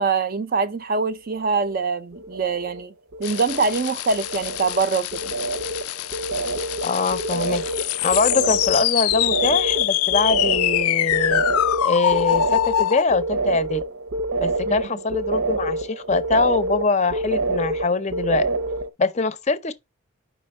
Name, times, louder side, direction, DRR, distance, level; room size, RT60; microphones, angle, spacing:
voice 1, 0.0-2.9 3.2-5.3 14.7-14.8, right 4 dB, 40° right, 0.5 m, -24 dB
sound 1, 1.2-1.8 2.1-2.9 3.1-18.9, right 2 dB, 85° right, 0.9 m, -27 dB
sound 2, 3.2-13.0, left 13 dB, 90° left, 0.3 m, -24 dB
voice 2, 6.8-7.6 8.0-11.4 11.8-13.8 14.4-18.4 19.0-19.7, left 4 dB, 30° left, 0.5 m, -23 dB
5.2 x 4.3 x 4.3 m
head